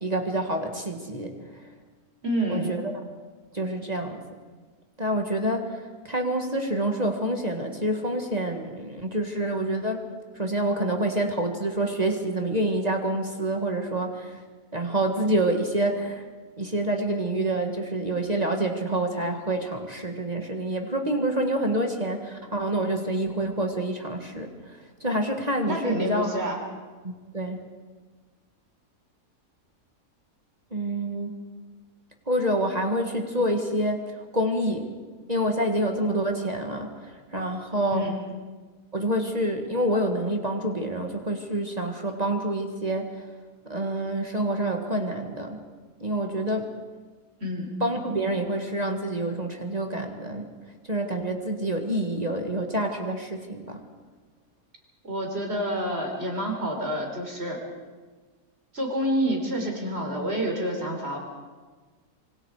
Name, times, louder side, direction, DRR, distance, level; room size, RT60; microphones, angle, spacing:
voice 1, 0.0-1.6 2.5-2.9 3.5-4.2 5.0-10.0 10.3-14.4 14.7-16.2 16.6-26.3 27.0-27.6 30.7-31.4 32.3-34.9 35.3-38.1 38.9-43.2 43.7-45.6 46.0-46.7 47.8-50.5 50.9-53.8, right 1 dB, 25° right, 3 dB, 1.9 m, -27 dB
voice 2, 2.2-2.7 25.6-26.6 37.9-38.2 47.4-47.7 55.0-57.6 58.7-61.2, equal, 45° right, 1 dB, 4.5 m, -28 dB
26.0 x 24.5 x 4.9 m, 1.4 s
omnidirectional pair, 1.5 m